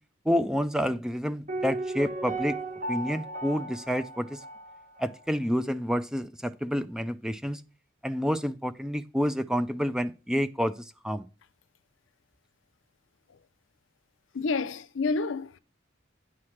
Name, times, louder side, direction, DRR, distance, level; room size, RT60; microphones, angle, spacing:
voice 1, 0.3-2.6 2.9-4.4 5.0-7.6 8.0-11.3, equal, 5° right, 0.3 m, -29 dB
Piano, 1.5-5.3 5.5-5.6, right 2 dB, 45° right, 1.4 m, -35 dB
voice 2, 14.3-15.6, left 4 dB, 80° left, 0.5 m, -29 dB
9.6 x 3.2 x 5.7 m
head